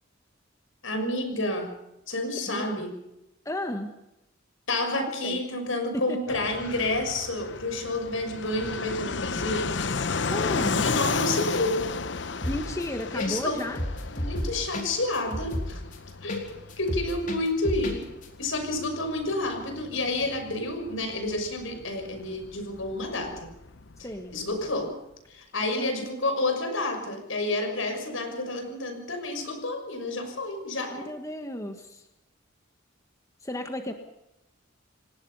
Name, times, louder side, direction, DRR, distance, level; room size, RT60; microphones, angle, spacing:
voice 1, 0.8-1.7 2.1-2.9 4.7-9.8 10.8-11.8 13.1-13.6 14.1-15.8 16.2-18.1 18.4-23.3 24.3-24.9 25.3-31.1, left 2 dB, 80° left, 5 dB, 6.2 m, -29 dB
voice 2, 2.5-2.8 3.4-3.9 5.0-5.4 5.9-6.4 10.3-10.9 12.4-13.8 24.0-24.4 25.7-26.0 30.9-32.1 33.4-33.9, left 1 dB, 15° left, 5 dB, 1.5 m, -34 dB
Fixed-wing aircraft airplane, 6.3-24.6, left 4 dB, 60° left, 0.8 m, -34 dB
sound 1, 12.4-12.8 13.2-13.3 13.6-16.4 16.7-18.0 18.2-18.3, left 1 dB, 40° left, 4.2 m, -31 dB
27.5 x 18.5 x 5.6 m, 0.89 s
head